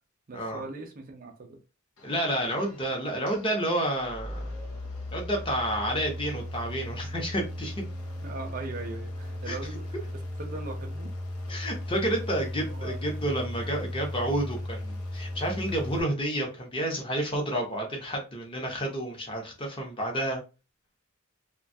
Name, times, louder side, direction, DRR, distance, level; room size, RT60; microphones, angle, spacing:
voice 1, 0.3-1.6 8.2-11.1 12.6-13.0, right 3 dB, 45° right, 3 dB, 0.6 m, -40 dB
sound 1, 2.0-16.0, left 1 dB, 85° left, 0.6 m, -37 dB
voice 2, 2.0-4.5 5.1-7.8 9.5-9.6 11.5-20.4, right 1 dB, 25° left, 1 dB, 0.8 m, -30 dB
2.6 x 2.3 x 2.6 m, 0.31 s
head